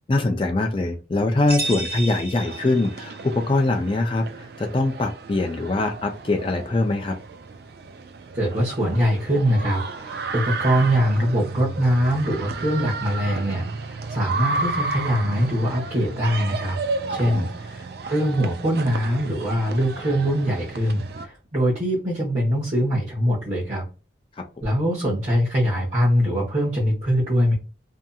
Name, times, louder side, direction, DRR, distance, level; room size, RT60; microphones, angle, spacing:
voice 1, 0.1-7.1 17.2-17.4 24.4-24.5, left 2 dB, 30° left, 4 dB, 0.3 m, -23 dB
sound 1, 1.5-3.3, right 2 dB, 15° right, 1.2 m, -32 dB
sound 2, 2.4-21.3, right 3 dB, 55° right, 0.3 m, -33 dB
voice 2, 8.3-16.8 17.1-23.8 24.6-27.5, equal, 40° right, -8 dB, 0.9 m, -23 dB
2.7 x 2.4 x 2.3 m, 0.33 s
head